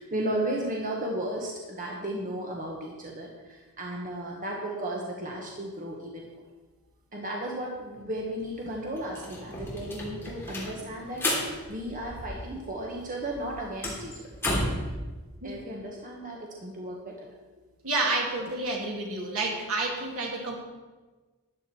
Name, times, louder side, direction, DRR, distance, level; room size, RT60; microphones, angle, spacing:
voice 1, 0.0-6.2 7.1-14.2 15.0-15.1 15.4-17.3, right 1 dB, 35° right, -2 dB, 1.5 m, -34 dB
sound 1, 8.4-8.5 8.8-12.7 13.0-14.9, left 1 dB, 10° left, 3.2 m, -33 dB
voice 2, 17.8-20.6, right 2 dB, 65° right, -1 dB, 2.9 m, -29 dB
13.5 x 10.5 x 4.5 m, 1.3 s
head